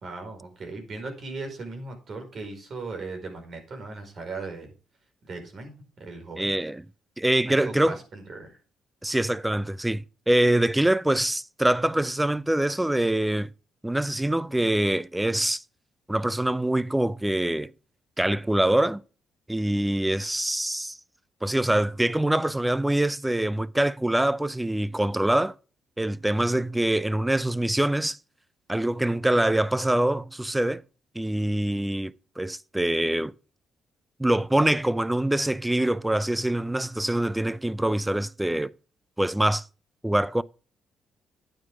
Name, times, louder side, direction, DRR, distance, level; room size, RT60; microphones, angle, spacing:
voice 1, 0.0-4.7 5.3-6.5 7.4-8.5 26.4-26.6, right 3 dB, 50° right, 4.8 m, -38 dB
voice 2, 6.4-6.8 7.2-8.0 9.0-13.5 13.8-15.6 16.1-17.7 18.2-19.0 19.5-21.0 21.4-25.5 26.0-28.2 28.7-30.8 31.1-33.3 34.2-38.7 39.2-39.6 40.0-40.4, right 1 dB, 10° right, 0.5 m, -24 dB
10.5 x 9.5 x 3.6 m
cardioid pair, 90°, 0 cm